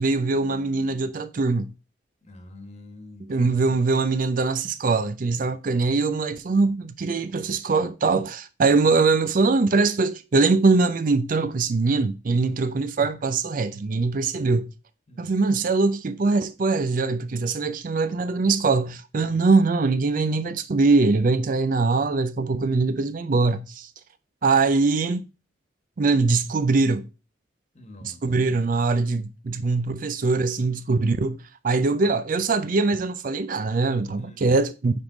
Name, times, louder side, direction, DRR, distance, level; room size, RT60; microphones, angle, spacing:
voice 1, 0.0-1.7 3.3-14.7 15.2-23.9 24.4-25.2 26.0-27.1 28.0-31.4 31.6-35.0, right 3 dB, 45° right, 0.4 m, -22 dB
voice 2, 2.2-3.8 15.1-15.3 19.1-19.6 27.7-28.2 34.2-34.7, left 1 dB, 35° left, 1.3 m, -46 dB
9.3 x 3.6 x 3.9 m
head